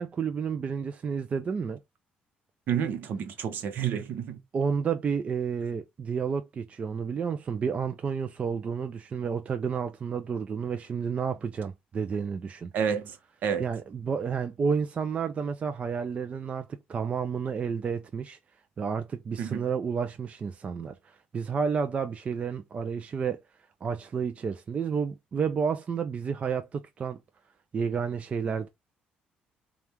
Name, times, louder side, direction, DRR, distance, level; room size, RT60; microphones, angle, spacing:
voice 1, 0.0-1.8 4.5-12.7 13.6-18.4 18.8-23.4 23.8-27.2 27.7-28.7, right 6 dB, 40° right, 0.5 m, -31 dB
voice 2, 2.7-4.4 12.7-13.2 13.4-13.7 19.4-19.6, right 8 dB, 65° right, 0.9 m, -29 dB
5.2 x 2.4 x 3.0 m
cardioid pair, 100°, 3 cm